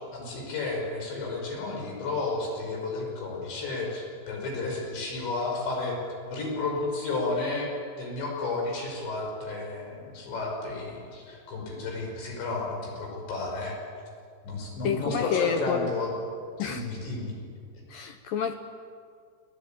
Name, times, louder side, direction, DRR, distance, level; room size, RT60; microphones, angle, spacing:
voice 1, 0.1-6.0 6.3-7.7 8.0-13.8 14.4-16.1 16.6-17.3, left 3 dB, 90° left, -1 dB, 7.9 m, -32 dB
voice 2, 14.8-15.9 16.6-16.8 17.9-18.5, left 7 dB, 70° left, 7 dB, 2.2 m, -29 dB
28.5 x 18.0 x 9.0 m, 2.2 s
omnidirectional pair, 5.0 m